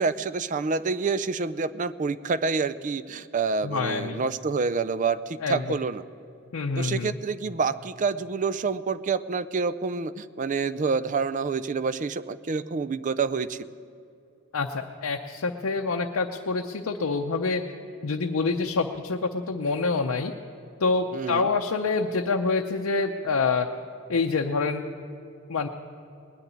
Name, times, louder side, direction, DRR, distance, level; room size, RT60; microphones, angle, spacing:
voice 1, 0.0-6.0 6.8-13.6 21.1-21.5, right 4 dB, 35° right, 15 dB, 0.4 m, -27 dB
voice 2, 3.6-4.2 5.4-5.6 6.5-7.1 14.5-17.6 18.0-20.3 20.8-23.7 24.1-24.8 25.5-25.7, left 4 dB, 85° left, 2 dB, 0.7 m, -26 dB
19.5 x 6.9 x 9.9 m, 2.6 s
head